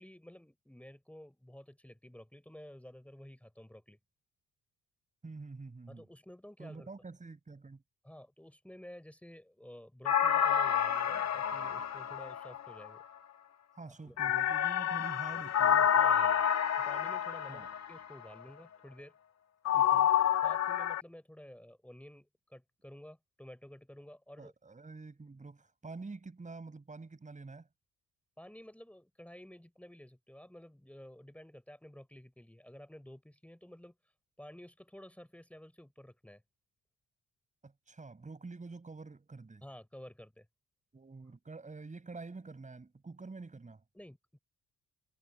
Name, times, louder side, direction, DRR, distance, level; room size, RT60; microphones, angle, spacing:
voice 1, 0.0-4.0 5.9-6.9 8.0-13.0 14.0-14.3 16.0-16.4 16.8-19.1 20.4-24.5 28.4-33.9 34.4-36.4 39.6-40.5 43.9-44.4, left 1 dB, 5° left, 5.6 m, -52 dB
voice 2, 5.2-6.1 6.6-7.8 13.7-15.9 17.5-17.7 19.7-20.1 24.4-27.7 37.6-39.6 40.9-43.8, right 3 dB, 25° right, 6.9 m, -47 dB
sound 1, 10.1-12.9 14.2-18.0 19.7-21.0, left 9 dB, 60° left, 1.9 m, -29 dB
cardioid pair, 90°, 30 cm